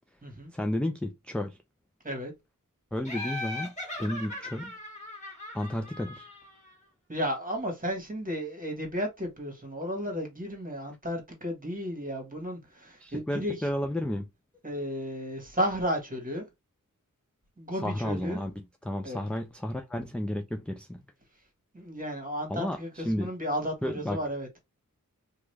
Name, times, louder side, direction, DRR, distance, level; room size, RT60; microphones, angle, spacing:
voice 1, 0.5-1.6 2.9-3.7 4.0-4.7 5.5-6.3 13.0-14.3 17.8-21.0 22.5-23.3 23.8-24.2, left 1 dB, 5° left, 0.4 m, -32 dB
Laughter, 3.0-6.7, left 2 dB, 20° left, 1.8 m, -39 dB
voice 2, 7.1-13.7 14.6-16.4 17.6-18.4 19.0-19.2 21.7-24.5, equal, 25° right, 1.5 m, -33 dB
2.9 x 2.4 x 3.2 m
cardioid pair, 50°, 34 cm